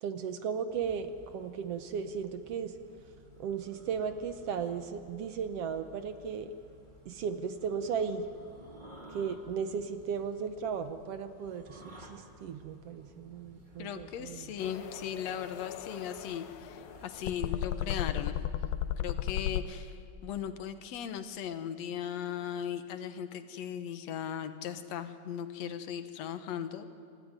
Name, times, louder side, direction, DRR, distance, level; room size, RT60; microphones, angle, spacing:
voice 1, 0.0-2.7 3.4-6.5 7.1-8.3 9.1-14.5, right 6 dB, 65° right, 9 dB, 1.7 m, -36 dB
sound 1, 0.7-18.3, equal, 15° right, 2.4 m, -55 dB
voice 2, 13.8-18.4 19.0-26.9, left 9 dB, 70° left, 9 dB, 2.1 m, -38 dB
sound 2, 14.6-19.7, left 11 dB, 85° left, 2.2 m, -35 dB
29.0 x 13.5 x 9.6 m, 2.5 s
omnidirectional pair, 3.3 m